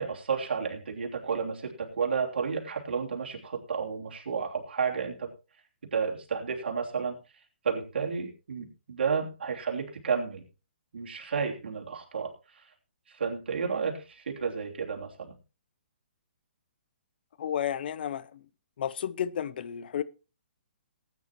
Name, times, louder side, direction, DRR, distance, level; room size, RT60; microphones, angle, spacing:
voice 1, 0.0-5.3 5.9-10.4 10.9-12.7 13.1-15.3, right 6 dB, 70° right, 3.2 m, -32 dB
voice 2, 17.4-18.3 18.8-20.0, left 9 dB, 55° left, 0.7 m, -32 dB
18.5 x 9.3 x 3.0 m
hypercardioid pair, 135°, 6 cm